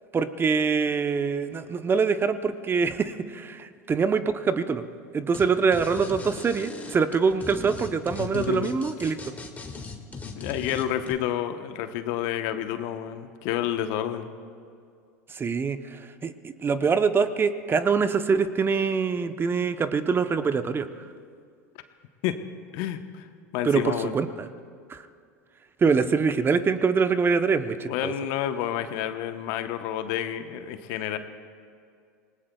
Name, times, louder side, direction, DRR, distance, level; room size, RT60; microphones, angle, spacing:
voice 1, 0.1-4.8 5.1-9.2 15.3-21.1 23.6-24.5 24.9-25.1 25.8-28.1, right 5 dB, 25° right, 10 dB, 0.8 m, -24 dB
sound 1, 5.3-5.4 5.7-11.1, left 4 dB, 15° left, 1.9 m, -38 dB
voice 2, 8.2-8.7 10.4-14.3 22.2-22.4 22.7-23.3 23.5-24.2 27.8-31.2, left 11 dB, 60° left, 9 dB, 1.0 m, -29 dB
27.0 x 19.5 x 2.3 m, 2.2 s
hypercardioid pair, 85°, 9 cm